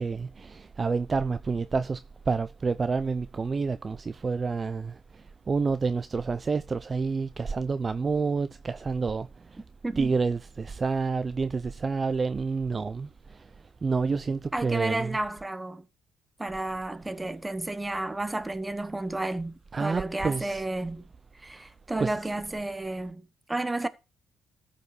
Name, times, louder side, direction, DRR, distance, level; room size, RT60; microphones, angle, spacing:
voice 1, 0.0-9.6 10.0-13.5 13.8-15.2 19.7-20.6 22.0-22.1, right 4 dB, 35° right, 0.5 m, -29 dB
voice 2, 9.8-10.1 14.5-15.8 16.4-19.5 19.8-21.0 21.4-23.9, right 2 dB, 15° right, 1.1 m, -32 dB
13.5 x 5.2 x 4.8 m
cardioid pair, 90°, 0 cm